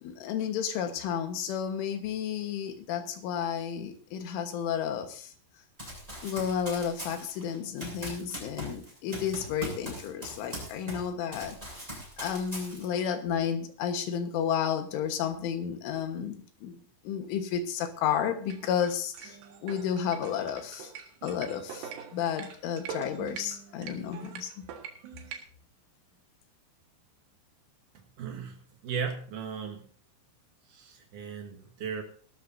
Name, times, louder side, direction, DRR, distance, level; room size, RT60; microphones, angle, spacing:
voice 1, 0.0-5.3 6.2-11.6 12.2-16.8 17.1-20.9 21.2-24.5, left 8 dB, 75° left, 7 dB, 3.8 m, -32 dB
Run, 5.8-11.1 11.3-13.1, equal, 5° right, 7.0 m, -41 dB
sound 1, 18.4-25.4, right 8 dB, 65° right, 3.4 m, -44 dB
voice 2, 28.2-29.8 30.7-32.0, right 6 dB, 80° right, 4 dB, 1.8 m, -36 dB
21.5 x 13.0 x 2.7 m, 0.44 s
omnidirectional pair, 5.9 m